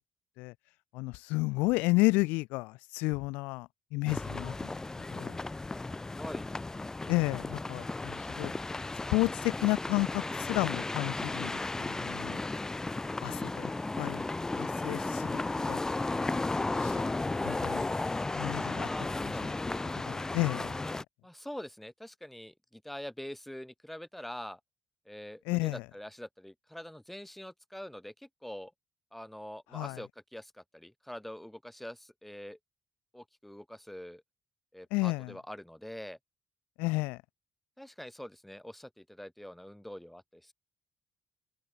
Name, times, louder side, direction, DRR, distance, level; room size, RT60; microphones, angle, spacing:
voice 1, 0.9-4.7 5.1-5.4 7.1-8.5 9.1-11.5 11.9-12.4 13.2-13.7 14.0-14.2 14.6-15.4 15.7-15.8 16.8-17.0 17.4-17.9 18.3-18.9 20.1-20.8 25.5-25.8 29.7-30.0 34.9-35.3 36.8-37.2, left 24 dB, 85° left, 0.4 m, -31 dB
sound 1, 4.1-21.0, left 2 dB, 20° left, 1.5 m, -34 dB
voice 2, 6.1-6.5 13.5-14.4 18.8-19.5 21.2-24.6 25.0-28.7 29.1-32.6 33.1-34.2 34.7-36.2 37.8-40.5, left 1 dB, 5° left, 8.0 m, -45 dB
open air
hypercardioid pair, 55°, 3 cm